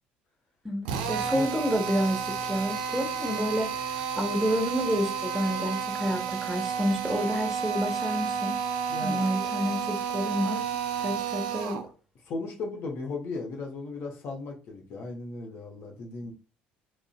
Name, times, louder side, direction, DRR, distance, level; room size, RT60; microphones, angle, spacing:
voice 1, 0.6-3.9 4.2-8.6 9.0-11.8, equal, ahead, 1.0 m, -29 dB
Drill, 0.8-11.9, right 7 dB, 75° right, 0.4 m, -31 dB
voice 2, 8.9-9.2 12.3-16.3, left 3 dB, 55° left, 0.8 m, -36 dB
3.7 x 2.1 x 2.3 m
hypercardioid pair, 60°, 5 cm